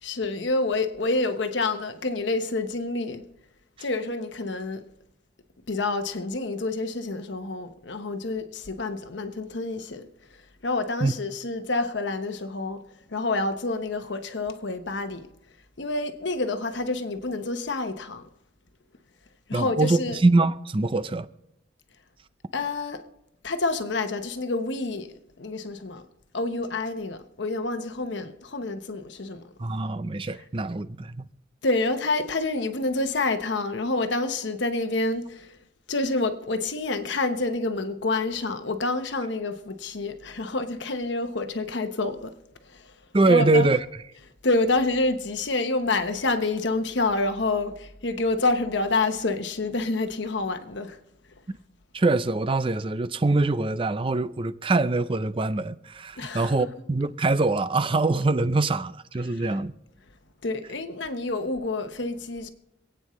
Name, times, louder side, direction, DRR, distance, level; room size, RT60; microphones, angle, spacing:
voice 1, 0.0-3.2 3.8-4.8 5.7-12.8 13.1-15.3 15.8-18.3 19.5-20.2 22.5-23.0 23.4-26.0 26.3-29.4 31.6-35.6 35.9-42.3 42.6-43.7 44.4-51.0 56.2-56.7 59.2-59.5 60.4-62.5, left 2 dB, 70° left, 1.0 m, -28 dB
voice 2, 19.5-21.3 29.6-31.3 43.1-43.8 51.9-59.7, right 2 dB, 30° right, 0.5 m, -23 dB
26.5 x 9.0 x 3.1 m
head